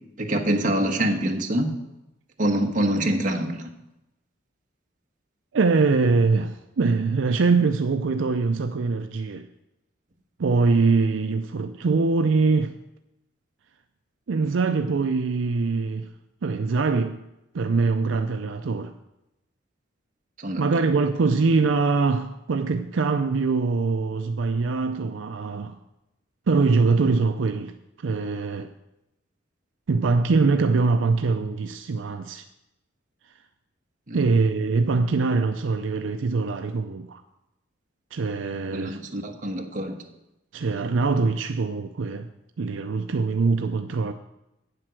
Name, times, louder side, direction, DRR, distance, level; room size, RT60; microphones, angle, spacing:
voice 1, 0.2-1.7 2.4-3.6 20.4-20.6 34.1-34.2 38.7-40.0, right 1 dB, 45° right, 1.3 m, -25 dB
voice 2, 5.5-9.5 10.4-12.7 14.3-16.1 16.4-17.2 17.5-18.9 20.6-25.8 26.5-28.7 29.9-32.5 33.2-33.3 34.1-37.2 38.1-39.0 40.5-42.3 42.6-44.1, right 4 dB, 75° right, 0.5 m, -23 dB
8.9 x 7.7 x 6.2 m
head